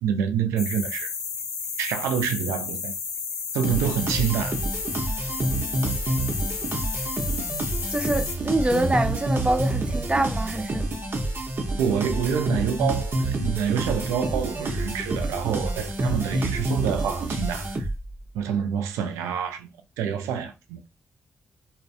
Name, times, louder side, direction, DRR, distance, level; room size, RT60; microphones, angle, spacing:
voice 1, 0.0-1.1 1.8-2.9 3.5-4.6 11.8-17.9 18.3-19.7 20.0-20.8, right 8 dB, 90° right, 0.3 m, -27 dB
sound 1, 0.6-8.4, left 5 dB, 80° left, 0.5 m, -32 dB
sound 2, 3.6-18.2, right 1 dB, 50° right, 0.8 m, -28 dB
voice 2, 7.9-10.8, right 1 dB, 20° right, 0.5 m, -25 dB
2.5 x 2.1 x 2.4 m
supercardioid pair, 40°, 5 cm